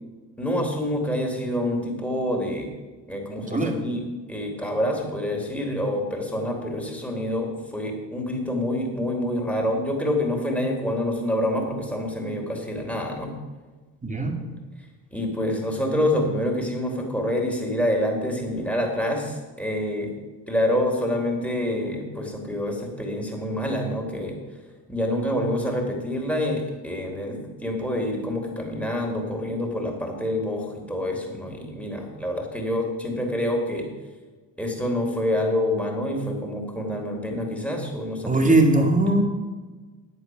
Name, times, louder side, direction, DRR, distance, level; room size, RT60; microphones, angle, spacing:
voice 1, 0.4-2.7 3.1-13.3 15.1-20.1 20.5-24.4 24.9-33.9 34.6-38.9, left 1 dB, 5° left, 1 dB, 3.4 m, -27 dB
voice 2, 14.0-14.4 38.3-39.2, right 2 dB, 15° right, 3 dB, 2.5 m, -20 dB
9.9 x 8.2 x 6.0 m, 1.3 s
hypercardioid pair, 55°, 49 cm